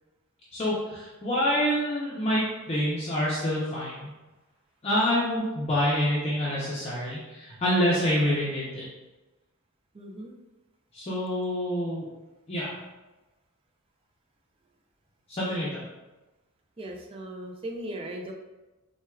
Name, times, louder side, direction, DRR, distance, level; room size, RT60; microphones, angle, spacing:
voice 1, 0.5-4.1 4.8-8.8 10.9-12.1 12.5-12.7 15.3-15.8, equal, 25° left, -8 dB, 0.5 m, -27 dB
voice 2, 9.9-10.3 16.8-18.3, right 1 dB, 25° right, 1 dB, 0.3 m, -38 dB
4.3 x 2.2 x 2.2 m, 1.1 s
head